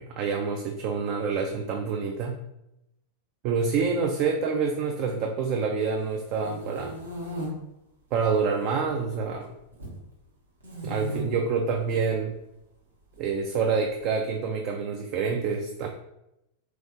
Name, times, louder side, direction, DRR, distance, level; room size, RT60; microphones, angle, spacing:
voice 1, 0.0-2.4 3.4-7.0 8.1-9.5 10.8-12.3 13.2-15.9, right 5 dB, 40° right, 3 dB, 0.3 m, -27 dB
sound 1, 6.1-7.5 8.1-8.7 9.0-10.0 10.6-11.2 11.8-12.0 13.1-14.1, left 1 dB, 75° right, 1.0 m, -38 dB
3.5 x 3.2 x 2.7 m, 0.87 s
figure-of-eight pair, 90°, 0 cm